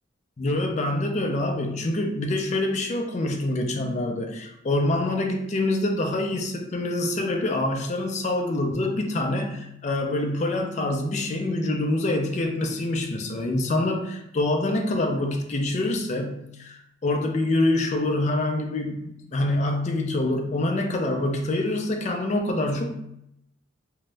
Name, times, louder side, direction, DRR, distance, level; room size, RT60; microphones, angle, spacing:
voice 1, 0.4-22.9, left 1 dB, 35° left, 3 dB, 0.4 m, -26 dB
2.7 x 2.0 x 3.2 m, 0.78 s
head